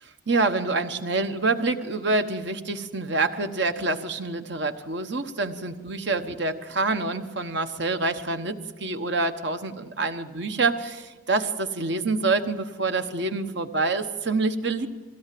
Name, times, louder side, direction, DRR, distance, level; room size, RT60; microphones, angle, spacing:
voice 1, 0.3-14.9, right 3 dB, 60° right, 8 dB, 1.2 m, -26 dB
22.0 x 17.0 x 7.7 m, 1.3 s
head